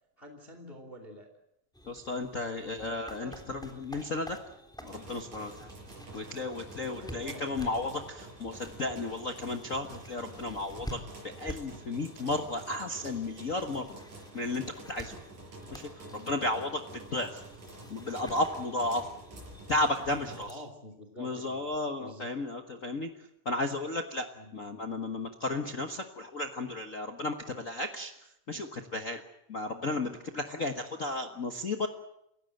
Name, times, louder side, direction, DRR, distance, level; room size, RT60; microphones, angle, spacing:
voice 1, 0.2-1.3 2.5-3.5 6.9-8.0 20.2-21.7 22.0-22.3 24.3-24.5, equal, 20° left, 6 dB, 2.6 m, -48 dB
sound 1, 1.7-20.5, equal, ahead, 3.2 m, -49 dB
voice 2, 1.9-4.4 4.8-5.7 6.1-11.0 11.4-14.0 14.3-15.1 15.7-15.8 16.1-17.4 17.9-19.1 19.7-20.5 21.2-23.1 23.4-24.3 24.5-28.1 28.5-29.2 29.5-31.9, left 2 dB, 90° left, 6 dB, 0.7 m, -33 dB
sound 2, 4.9-20.4, right 2 dB, 70° right, 7.9 m, -49 dB
29.0 x 16.5 x 7.9 m, 0.82 s
omnidirectional pair, 3.7 m